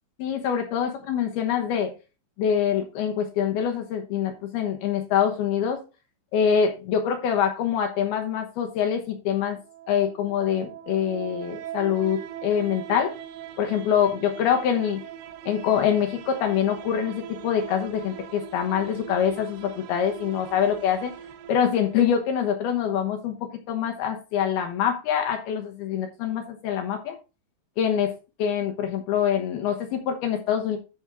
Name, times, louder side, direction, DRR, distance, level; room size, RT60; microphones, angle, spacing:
voice 1, 0.2-1.9 2.4-5.8 6.3-9.6 9.9-13.1 13.6-15.0 15.5-21.1 21.5-27.2 27.8-30.8, left 8 dB, 70° left, 5 dB, 2.7 m, -25 dB
sound 1, 9.6-22.4, right 10 dB, 80° right, 2.4 m, -41 dB
13.0 x 4.4 x 3.5 m, 0.30 s
omnidirectional pair, 5.3 m